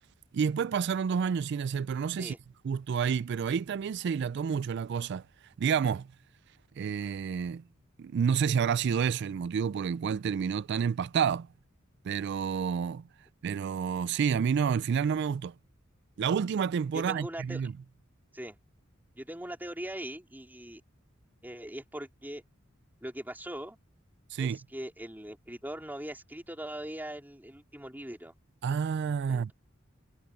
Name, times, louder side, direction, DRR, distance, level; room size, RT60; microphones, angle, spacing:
voice 1, 0.3-2.4 2.6-5.2 5.6-6.1 6.8-7.6 8.0-11.5 12.0-13.0 13.4-15.5 16.2-17.7 24.3-24.6 28.6-29.5, right 7 dB, 55° right, 0.3 m, -29 dB
voice 2, 16.9-17.6 18.3-18.6 19.2-20.8 21.4-22.4 23.0-23.8 24.4-28.3 29.3-29.5, right 1 dB, 10° right, 3.9 m, -41 dB
head